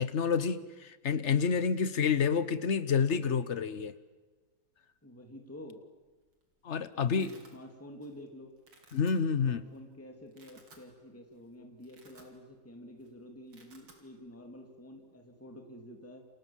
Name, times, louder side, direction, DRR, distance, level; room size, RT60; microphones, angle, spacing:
voice 1, 0.0-3.9 6.6-7.3 8.9-9.6, left 6 dB, 45° left, 13 dB, 1.0 m, -29 dB
voice 2, 5.0-5.8 6.9-8.5 9.4-16.3, left 1 dB, 5° left, 3 dB, 2.8 m, -49 dB
Domestic sounds home sounds, 6.1-6.4 6.7-7.5 8.0-8.3 8.6-9.1 9.7-9.8 10.2-10.9 11.3-11.4 11.7-12.7 12.9-13.1 13.3-14.0, right 3 dB, 70° right, 4.4 m, -59 dB
29.5 x 27.0 x 7.4 m, 1.2 s
omnidirectional pair, 2.3 m